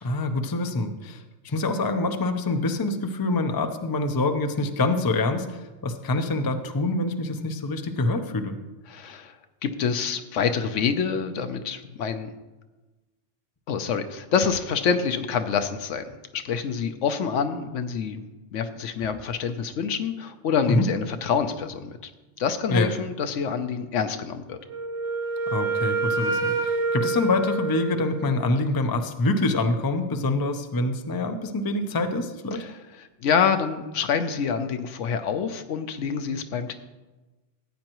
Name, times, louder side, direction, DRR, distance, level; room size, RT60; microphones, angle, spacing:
voice 1, 0.0-8.6 20.7-20.9 22.7-22.9 25.5-32.6, left 2 dB, 25° left, 6 dB, 0.4 m, -25 dB
voice 2, 8.9-9.4 9.6-12.3 13.7-18.2 18.5-21.9 22.4-24.6 32.5-36.7, left 6 dB, 75° left, 9 dB, 1.0 m, -27 dB
Wind instrument woodwind instrument, 24.7-28.5, right 3 dB, 40° right, 1.1 m, -27 dB
14.0 x 8.8 x 3.0 m, 1.2 s
omnidirectional pair, 1.3 m